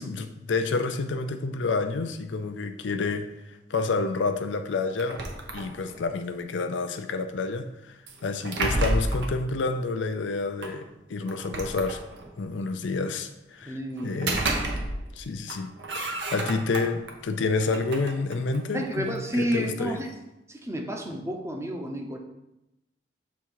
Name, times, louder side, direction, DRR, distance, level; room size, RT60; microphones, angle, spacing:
voice 1, 0.0-5.2 5.5-7.9 8.2-12.0 12.4-14.5 15.2-20.0, left 3 dB, 85° left, 7 dB, 0.5 m, -29 dB
sound 1, 5.0-6.1 8.1-9.4 10.6-10.7 11.3-12.4 14.0-15.2 15.5-17.1 17.6-19.2, right 2 dB, 70° right, 0.9 m, -31 dB
voice 2, 13.6-14.2 18.7-20.1 20.5-22.2, equal, 15° right, 2 dB, 0.8 m, -30 dB
7.0 x 3.7 x 4.6 m, 0.90 s
head